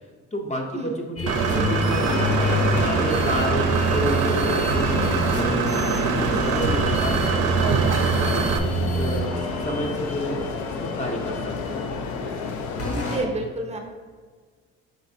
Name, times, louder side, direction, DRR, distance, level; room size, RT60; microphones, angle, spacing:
voice 1, 0.3-2.6 2.9-8.5 8.9-9.3 9.6-10.4 10.8-11.8, equal, 25° left, 1 dB, 0.6 m, -30 dB
sound 1, 1.2-11.9 12.8-13.2, right 1 dB, 50° left, 1.1 m, -27 dB
Engine / Mechanisms, 1.3-8.6, right 6 dB, 85° right, 0.5 m, -24 dB
sound 2, 1.9-13.3, left 4 dB, 75° left, 0.5 m, -31 dB
voice 2, 12.9-13.8, right 2 dB, 20° right, 2 dB, 0.6 m, -29 dB
5.0 x 4.0 x 2.6 m, 1.5 s
cardioid pair, 90°, 30 cm